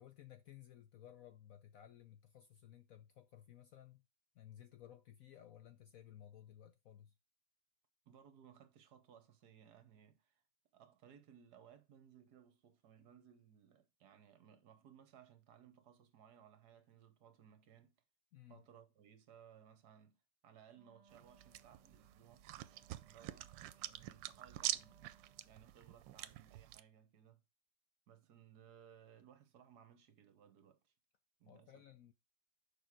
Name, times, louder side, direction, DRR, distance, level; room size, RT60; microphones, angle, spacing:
voice 1, 0.0-4.0 4.3-7.1 18.3-18.6 31.4-32.1, left 11 dB, 65° left, 0.9 m, -58 dB
voice 2, 8.1-10.4 10.7-18.0 18.5-22.5 22.9-25.1 25.4-27.4 28.1-30.9 31.4-31.7, right 8 dB, 65° right, 1.5 m, -63 dB
Wind instrument woodwind instrument, 20.7-25.8, right 4 dB, 30° right, 0.8 m, -70 dB
sound 1, 21.1-26.8, right 14 dB, 85° right, 1.3 m, -46 dB
6.7 x 5.0 x 4.8 m
omnidirectional pair, 2.0 m